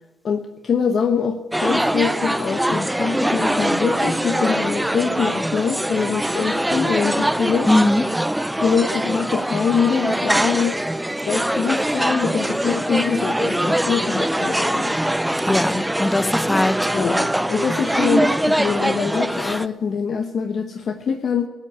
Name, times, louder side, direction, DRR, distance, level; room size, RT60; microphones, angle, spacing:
voice 1, 0.2-7.7 8.6-10.8 11.3-15.0 16.9-21.5, left 6 dB, 55° left, 6 dB, 1.1 m, -24 dB
sound 1, 1.5-19.7, right 1 dB, 5° right, 0.4 m, -22 dB
voice 2, 7.6-8.0 15.5-17.3 19.3-19.6, left 2 dB, 15° left, 15 dB, 0.8 m, -21 dB
16.0 x 8.4 x 9.7 m, 1.2 s
cardioid pair, 90°, 0 cm